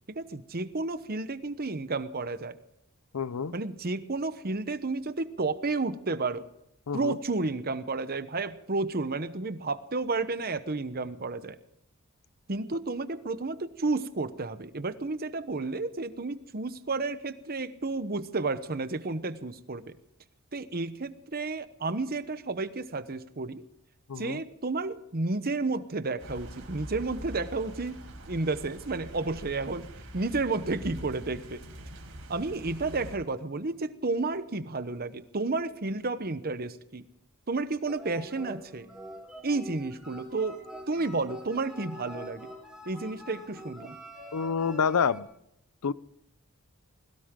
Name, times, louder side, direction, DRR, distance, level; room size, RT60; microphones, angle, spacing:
voice 1, 0.1-2.6 3.5-6.4 6.9-11.6 12.5-19.9 20.5-23.6 24.2-28.0 28.3-31.6 32.3-37.0 37.5-38.9 39.4-42.5 42.9-44.0, right 3 dB, 45° right, 12 dB, 0.9 m, -31 dB
voice 2, 3.1-3.5 6.9-7.2 24.1-24.4 44.3-45.3 45.8-45.9, left 6 dB, 85° left, 18 dB, 0.6 m, -28 dB
sound 1, 26.2-33.2, right 1 dB, 60° right, 4.6 m, -44 dB
sound 2, 37.9-45.2, equal, 5° right, 4.4 m, -45 dB
21.5 x 18.0 x 3.8 m, 0.79 s
head